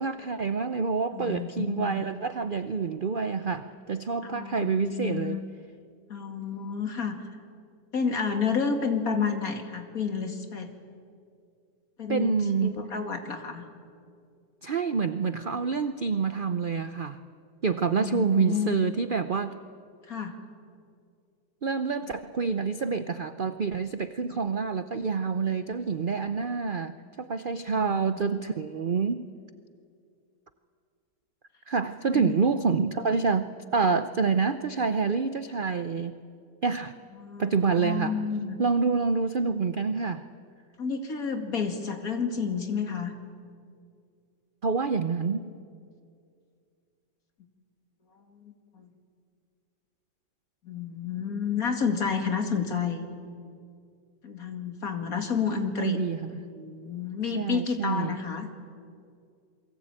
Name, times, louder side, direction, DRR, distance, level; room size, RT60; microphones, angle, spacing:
voice 1, 0.0-5.4 12.1-12.8 14.6-17.2 17.6-19.6 21.6-29.3 31.7-36.2 36.6-36.9 37.4-38.1 38.6-40.3 44.6-45.5 55.8-56.3 57.3-58.2, right 5 dB, 55° right, 11 dB, 0.5 m, -27 dB
voice 2, 1.1-2.0 4.2-5.4 6.1-7.4 7.9-10.7 12.0-12.4 12.6-13.6 17.8-18.8 20.0-20.4 27.7-28.2 32.1-32.5 37.2-38.6 40.8-43.1 48.3-48.9 50.6-53.1 54.2-56.0 56.3-58.5, left 6 dB, 55° left, 5 dB, 2.7 m, -30 dB
28.0 x 22.5 x 8.9 m, 2.3 s
omnidirectional pair, 1.9 m